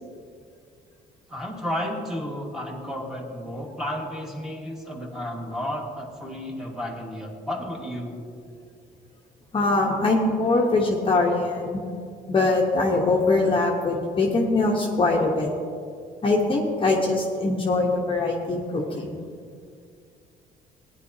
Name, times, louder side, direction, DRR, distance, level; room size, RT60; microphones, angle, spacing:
voice 1, 1.3-8.2, equal, ahead, -1 dB, 1.7 m, -32 dB
voice 2, 9.5-11.8 12.3-15.5 16.2-19.2, left 2 dB, 30° left, -1 dB, 1.1 m, -22 dB
16.5 x 9.9 x 2.8 m, 2.3 s
cardioid pair, 110°, 17 cm